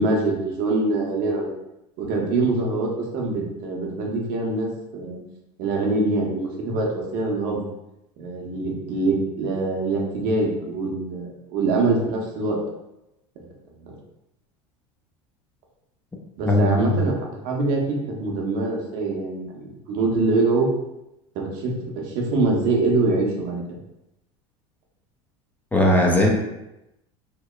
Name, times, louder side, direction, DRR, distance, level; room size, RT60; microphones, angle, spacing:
voice 1, 0.0-1.5 2.0-5.2 5.6-7.6 8.2-12.6 13.8-13.9 16.4-17.2 17.4-20.7 21.3-23.6, right 3 dB, 60° right, -1 dB, 0.7 m, -24 dB
voice 2, 16.5-17.0 25.7-26.3, left 1 dB, 10° left, -1 dB, 0.4 m, -18 dB
2.8 x 2.0 x 2.3 m, 0.89 s
supercardioid pair, 95°, 16 cm